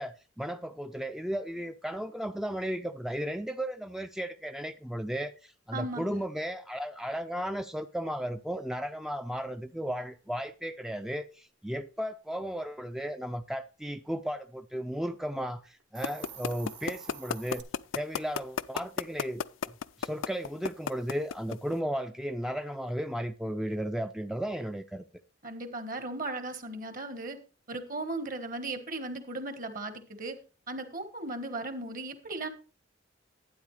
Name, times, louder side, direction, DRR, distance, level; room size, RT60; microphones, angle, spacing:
voice 1, 0.0-17.6 17.9-19.7 20.0-25.1, equal, ahead, 0.4 m, -35 dB
voice 2, 5.7-6.2 25.4-27.4 27.7-30.4 30.7-32.5, right 2 dB, 45° right, 1.4 m, -37 dB
Hiss, 15.8-17.6, right 7 dB, 65° right, 1.3 m, -47 dB
sound 1, 16.0-21.7, left 7 dB, 75° left, 0.4 m, -31 dB
12.0 x 9.4 x 3.2 m
head